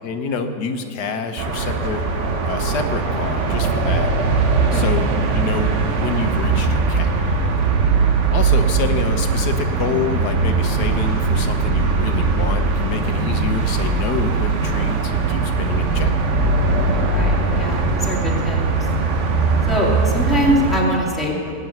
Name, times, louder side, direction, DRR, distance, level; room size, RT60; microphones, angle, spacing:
voice 1, 0.0-2.0 2.4-4.4 4.7-7.3 8.3-16.1, left 5 dB, 85° left, 6 dB, 1.7 m, -27 dB
sound 1, 1.4-20.8, right 4 dB, 50° right, 1.3 m, -20 dB
voice 2, 16.9-18.6 19.7-21.5, equal, ahead, -4 dB, 2.5 m, -23 dB
19.0 x 6.9 x 9.2 m, 2.4 s
omnidirectional pair, 1.7 m